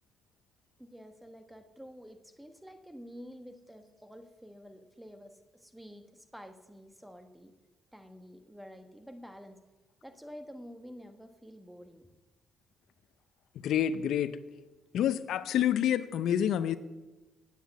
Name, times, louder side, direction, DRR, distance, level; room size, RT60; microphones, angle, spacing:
voice 1, 0.8-7.5 7.9-9.6 10.0-12.1, equal, 5° right, 7 dB, 1.2 m, -49 dB
voice 2, 13.6-14.4 14.9-16.8, left 10 dB, 75° left, 14 dB, 0.5 m, -28 dB
9.2 x 8.3 x 8.1 m, 1.1 s
cardioid pair, 90°, 0 cm